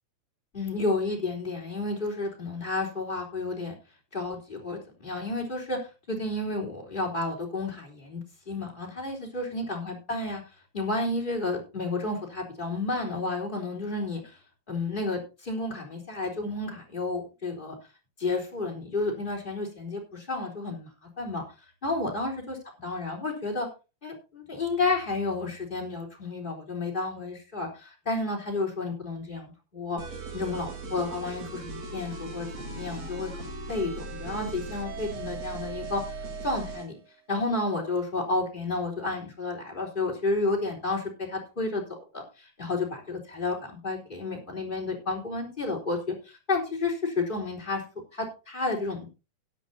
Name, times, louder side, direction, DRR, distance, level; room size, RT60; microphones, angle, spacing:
voice 1, 0.5-3.7 4.1-5.8 6.1-10.4 10.7-14.2 14.7-17.8 18.2-21.4 21.8-23.7 24.0-30.0 30.3-36.2 36.4-37.0 37.3-46.0 46.3-47.8 48.1-49.1, left 3 dB, 15° left, -1 dB, 3.8 m, -31 dB
sound 1, 30.0-36.9, right 3 dB, 60° right, 4.2 m, -38 dB
17.0 x 10.5 x 2.7 m, 0.30 s
omnidirectional pair, 3.4 m